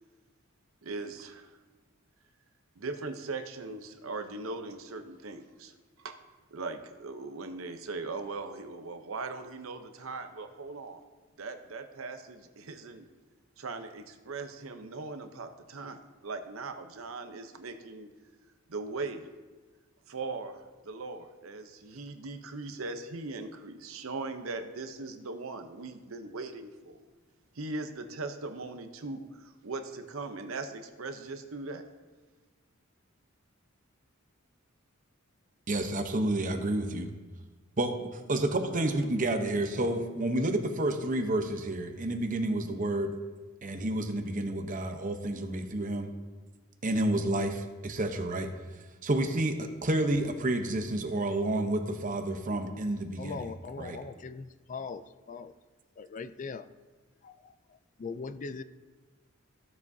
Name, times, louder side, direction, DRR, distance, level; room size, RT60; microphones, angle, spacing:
voice 1, 0.8-1.6 2.8-6.1 6.5-11.0 11.4-13.1 13.6-16.0 16.2-18.1 18.7-19.3 20.1-27.0 27.6-31.8, right 3 dB, 80° right, 7 dB, 0.8 m, -39 dB
voice 2, 35.7-37.1 37.8-43.1 43.6-46.1 46.8-48.5 49.0-53.4 53.8-54.0, right 1 dB, 40° right, 6 dB, 0.8 m, -30 dB
voice 3, 53.2-55.5 56.0-56.7 57.2-58.6, left 4 dB, 35° left, 12 dB, 0.3 m, -40 dB
15.5 x 7.2 x 2.7 m, 1.3 s
head